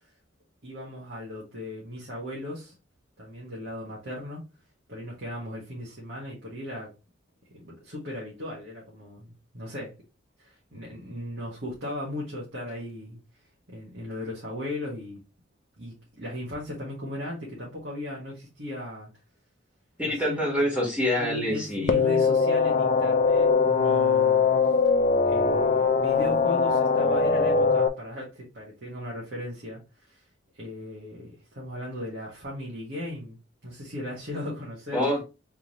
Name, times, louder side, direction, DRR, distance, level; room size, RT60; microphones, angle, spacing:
voice 1, 0.6-2.7 3.2-4.4 4.9-6.9 7.5-9.9 10.4-13.2 13.7-15.2 15.8-19.1 20.1-20.4 21.2-24.7 25.2-30.2 30.5-35.1, left 1 dB, 60° right, 1.6 m, -37 dB
voice 2, 20.0-22.0 34.9-35.2, left 1 dB, 5° right, 1.7 m, -26 dB
sound 1, 21.9-27.9, left 5 dB, 40° left, 0.5 m, -21 dB
3.7 x 3.5 x 3.0 m
head